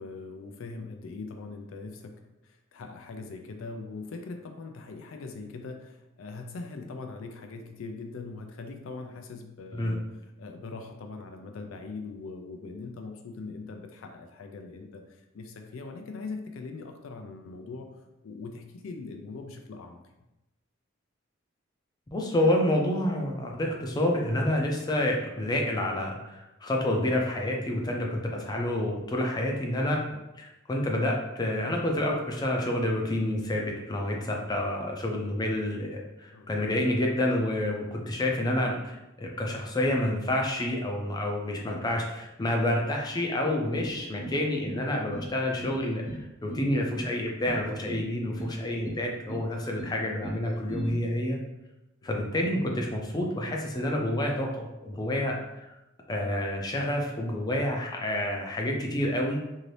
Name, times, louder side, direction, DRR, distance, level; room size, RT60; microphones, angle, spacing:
voice 1, 0.0-2.1 2.5-10.0 10.4-15.0 15.3-17.9 18.2-20.0 30.1-30.2 36.3-36.5 52.0-52.1, left 3 dB, 85° left, 4 dB, 0.4 m, -41 dB
voice 2, 22.1-30.0 30.4-46.1 46.4-51.4 52.0-55.4 56.1-59.4, left 1 dB, 20° left, 0 dB, 0.4 m, -28 dB
sound 1, 43.7-44.4 44.7-45.3 45.6-46.2 46.5-47.1 47.5-48.1 48.4-49.0 49.3-49.9 50.2-50.9, right 1 dB, 90° right, 1.0 m, -38 dB
2.7 x 2.5 x 3.2 m, 0.96 s
head